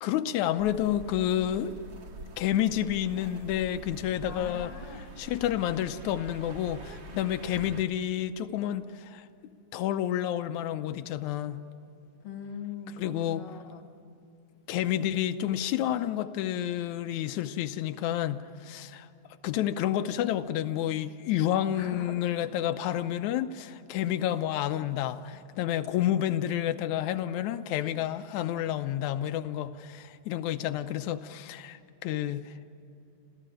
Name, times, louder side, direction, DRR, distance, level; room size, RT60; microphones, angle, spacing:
voice 1, 0.0-1.8 2.4-4.7 5.2-9.3 9.7-11.6 13.0-13.4 14.7-19.1 19.4-32.5, left 11 dB, 85° left, 9 dB, 2.2 m, -30 dB
sound 1, 0.6-7.8, right 1 dB, 70° right, 0.6 m, -46 dB
voice 2, 4.3-5.1 12.2-13.8 21.7-22.2 22.9-23.0, left 6 dB, 60° left, 5 dB, 2.8 m, -41 dB
27.5 x 15.0 x 9.1 m, 2.8 s
omnidirectional pair, 3.4 m